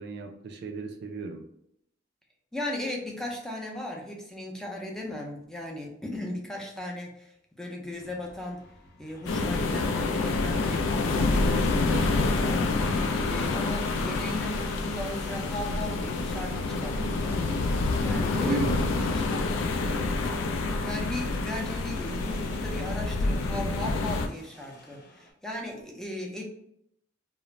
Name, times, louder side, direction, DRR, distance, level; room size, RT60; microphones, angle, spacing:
voice 1, 0.0-1.4 13.2-13.6 18.4-18.9, right 4 dB, 60° right, 5 dB, 0.3 m, -34 dB
voice 2, 2.5-8.6 9.0-12.7 13.2-16.5 16.8-17.5 18.0-19.4 20.8-26.4, left 1 dB, 5° left, -1 dB, 0.4 m, -37 dB
sound 1, 7.9-25.3, left 1 dB, 60° left, 0.8 m, -49 dB
sound 2, 9.3-24.3, left 3 dB, 85° left, 0.3 m, -27 dB
2.4 x 2.0 x 3.0 m, 0.75 s
head